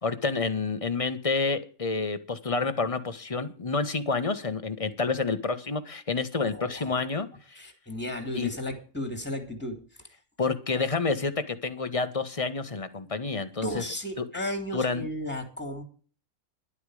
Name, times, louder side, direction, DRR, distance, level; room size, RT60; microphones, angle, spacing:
voice 1, 0.0-7.3 8.3-8.5 10.4-13.8 14.2-14.3 14.7-15.0, left 4 dB, 25° left, 9 dB, 1.3 m, -29 dB
voice 2, 6.4-6.9 7.5-10.1 13.6-15.8, left 1 dB, 5° left, 6 dB, 2.9 m, -35 dB
12.0 x 11.5 x 5.0 m, 0.40 s
omnidirectional pair, 1.5 m